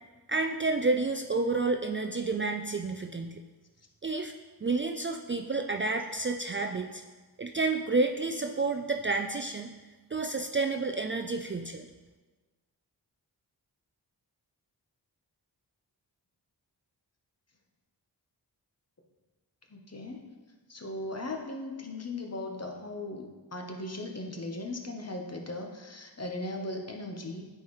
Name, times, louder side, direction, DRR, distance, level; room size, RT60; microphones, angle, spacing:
voice 1, 0.3-3.4 4.0-4.3 4.6-7.0 7.4-9.7 10.1-11.9, right 3 dB, 30° right, 4 dB, 0.4 m, -30 dB
voice 2, 19.7-20.2 20.7-27.5, left 2 dB, 35° left, 3 dB, 1.0 m, -38 dB
9.2 x 4.6 x 3.2 m, 1.3 s
cardioid pair, 45°, 43 cm